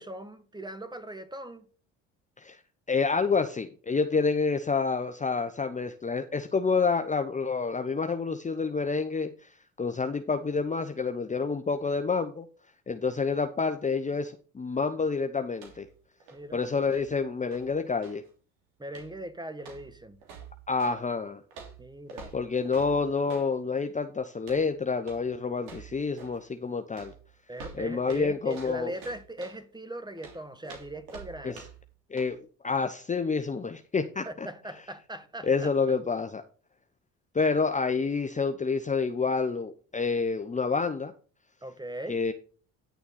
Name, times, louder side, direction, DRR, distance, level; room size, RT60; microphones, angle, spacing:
voice 1, 0.0-1.6 16.3-16.6 18.8-20.2 21.8-22.3 27.5-31.6 34.2-35.7 41.6-42.2, right 1 dB, 10° right, 1.6 m, -40 dB
voice 2, 2.9-12.5 12.9-15.9 16.5-18.2 20.7-21.4 22.3-27.1 27.7-28.9 31.4-31.5 32.1-32.4 32.6-34.3 35.4-36.4 37.3-41.1 42.1-42.3, left 4 dB, 20° left, 0.9 m, -28 dB
sound 1, 15.5-16.0 16.2-18.3 18.9-19.2 19.6-21.0 21.5-23.5 24.4-24.7 25.0-25.3 25.6-26.4 26.9-29.6 30.2-31.9 32.2-32.3, right 5 dB, 75° right, 3.2 m, -47 dB
10.5 x 7.0 x 4.2 m
hypercardioid pair, 65°, 37 cm